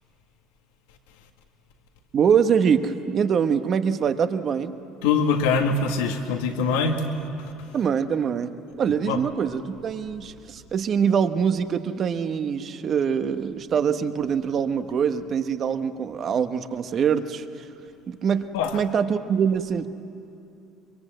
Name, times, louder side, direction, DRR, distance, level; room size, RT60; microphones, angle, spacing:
voice 1, 2.1-4.8 7.7-8.5 8.8-17.7 18.1-19.9, right 7 dB, 45° right, 9 dB, 1.2 m, -24 dB
voice 2, 5.0-7.0 9.1-9.2 18.5-18.8, left 5 dB, 85° left, 4 dB, 1.8 m, -23 dB
24.5 x 22.5 x 7.9 m, 2.6 s
supercardioid pair, 85°, 0 cm